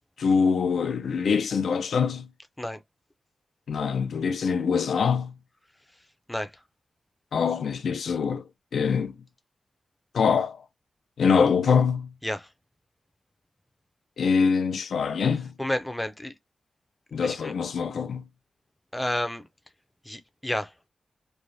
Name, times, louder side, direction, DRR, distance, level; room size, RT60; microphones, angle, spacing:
voice 1, 0.2-2.3 3.7-5.3 7.3-9.2 10.1-10.6 11.2-12.1 14.2-15.5 17.1-18.2, left 6 dB, 90° left, 0.3 m, -24 dB
voice 2, 15.6-16.3 17.2-17.5 18.9-19.4 20.1-20.7, left 1 dB, 5° left, 0.4 m, -30 dB
3.1 x 2.1 x 2.5 m
wide cardioid pair, 165°, 0 cm